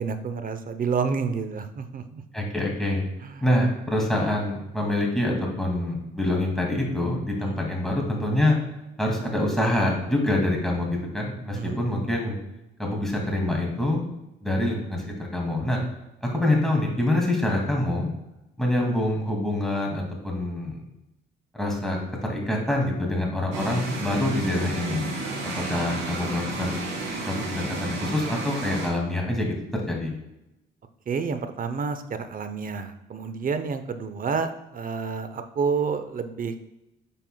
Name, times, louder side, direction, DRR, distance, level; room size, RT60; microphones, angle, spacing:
voice 1, 0.0-2.2 3.2-3.4 7.4-7.7 11.5-11.9 31.1-36.7, right 5 dB, 45° right, 9 dB, 0.7 m, -29 dB
voice 2, 2.3-3.0 3.4-8.6 9.0-12.4 12.8-14.0 14.4-15.8 16.2-18.1 18.6-20.8 21.6-25.1 25.5-26.7 27.3-30.1, left 1 dB, ahead, -1 dB, 2.2 m, -25 dB
sound 1, 23.5-28.9, right 2 dB, 85° right, 2.3 m, -32 dB
9.2 x 5.6 x 2.3 m, 0.91 s
cardioid pair, 90°, 20 cm